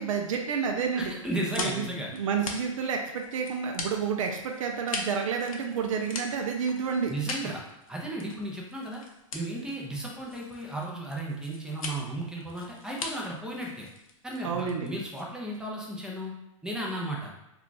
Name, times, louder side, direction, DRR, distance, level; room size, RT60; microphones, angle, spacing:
voice 1, 0.0-1.1 1.5-1.9 2.1-7.1 7.4-7.5 14.4-14.9, right 6 dB, 70° right, 3 dB, 0.4 m, -29 dB
voice 2, 0.9-2.1 7.1-7.6 7.9-9.0 9.3-13.9 14.2-16.3 16.6-17.3, right 1 dB, 5° right, -2 dB, 0.5 m, -34 dB
sound 1, 1.0-15.7, left 3 dB, 90° left, 0.5 m, -41 dB
2.4 x 2.2 x 3.8 m, 0.91 s
hypercardioid pair, 125°, 17 cm